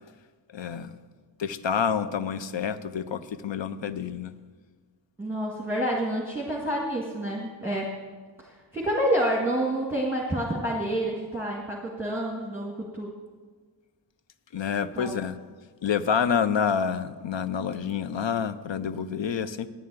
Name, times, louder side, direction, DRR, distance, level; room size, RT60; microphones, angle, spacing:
voice 1, 0.5-0.9 1.4-4.3 14.5-15.4 15.8-19.7, left 7 dB, 90° left, 13 dB, 0.6 m, -28 dB
voice 2, 5.2-8.0 8.4-13.1 15.0-15.1, right 1 dB, 5° right, -3 dB, 1.7 m, -28 dB
9.8 x 7.5 x 8.8 m, 1.5 s
wide cardioid pair, 65°, 43 cm